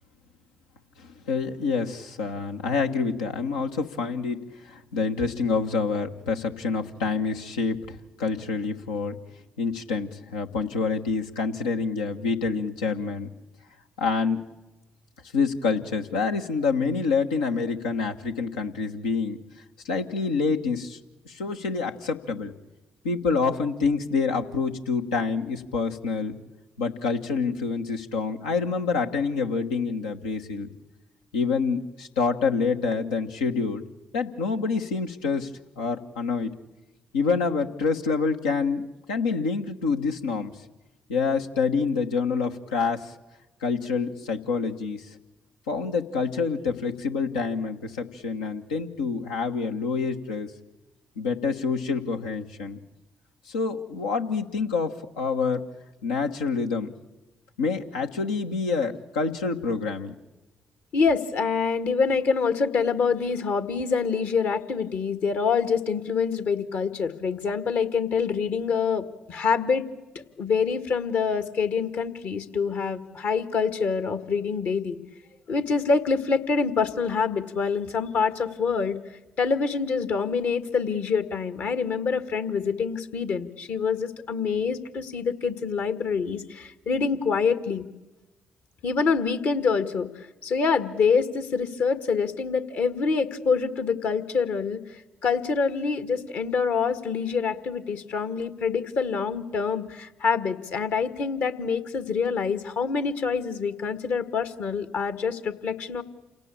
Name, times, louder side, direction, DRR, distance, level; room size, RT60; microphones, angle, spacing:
voice 1, 1.0-9.2 9.6-13.3 14.0-14.4 15.3-19.4 19.8-21.0 21.2-22.5 23.0-26.4 26.8-30.7 31.3-33.8 34.1-35.5 35.8-36.5 37.1-40.5 41.1-43.1 43.6-45.1 45.7-50.5 51.2-52.8 53.5-55.6 56.0-56.9 57.6-60.1, left 4 dB, 80° left, 3 dB, 1.3 m, -27 dB
voice 2, 60.9-69.9 70.4-75.0 75.5-79.0 79.4-87.9 88.8-90.1 90.4-94.8 95.2-106.0, left 5 dB, 60° left, 10 dB, 1.7 m, -26 dB
28.0 x 17.5 x 8.7 m, 1.1 s
figure-of-eight pair, 45°, 4 cm